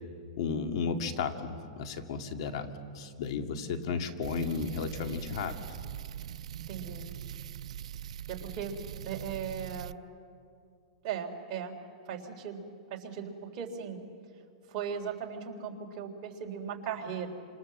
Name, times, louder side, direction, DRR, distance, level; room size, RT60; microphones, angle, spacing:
voice 1, 0.4-5.6, left 5 dB, 55° left, 7 dB, 2.1 m, -34 dB
sound 1, 4.2-10.0, right 10 dB, 80° right, 0.6 m, -42 dB
voice 2, 6.7-7.1 8.3-8.8 9.1-10.0 11.0-11.8 12.1-14.0 14.7-17.3, right 7 dB, 35° right, 1 dB, 3.5 m, -38 dB
28.5 x 27.0 x 7.6 m, 2.3 s
supercardioid pair, 160°, 3 cm